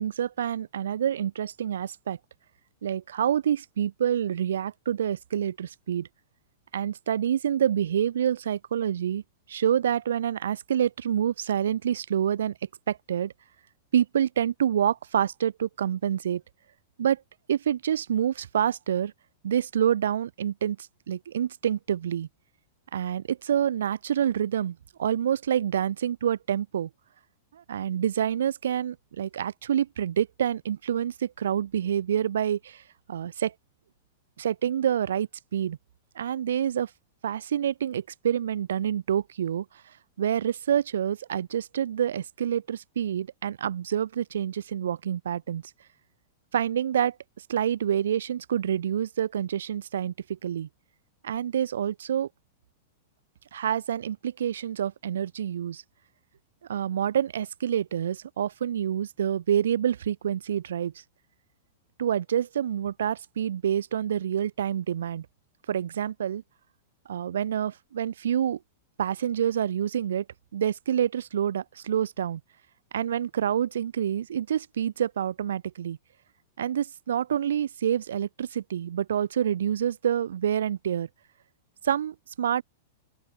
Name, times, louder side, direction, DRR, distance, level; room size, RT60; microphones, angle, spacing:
voice 1, 0.0-2.2 2.8-6.1 6.7-9.2 9.5-12.5 12.9-13.3 13.9-16.4 17.0-17.2 17.5-19.1 19.4-22.3 22.9-26.9 27.5-32.8 33.1-33.5 34.4-35.8 36.1-36.9 37.2-39.6 40.2-45.6 46.5-47.2 47.5-50.7 51.2-52.3 53.5-55.8 56.7-60.9 62.0-65.3 65.7-66.4 67.1-68.6 69.0-70.2 70.5-72.4 72.9-76.0 76.6-81.1 81.8-82.6, right 9 dB, 65° right, 6.1 m, -27 dB
open air
figure-of-eight pair, 100°, 0 cm